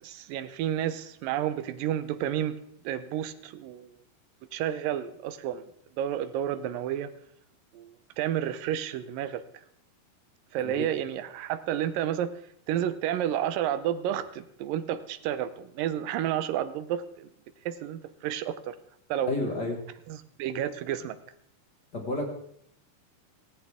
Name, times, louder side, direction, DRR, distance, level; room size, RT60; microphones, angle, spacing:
voice 1, 0.0-2.6 2.8-4.0 4.5-5.6 6.0-7.1 7.7-9.4 10.5-12.4 12.7-17.3 17.7-18.8 19.1-19.3 20.1-21.2, right 10 dB, 75° right, 12 dB, 2.1 m, -31 dB
voice 2, 19.3-19.8 21.9-22.2, left 2 dB, 35° left, 1 dB, 1.8 m, -30 dB
17.0 x 16.0 x 3.6 m, 0.66 s
omnidirectional pair, 4.7 m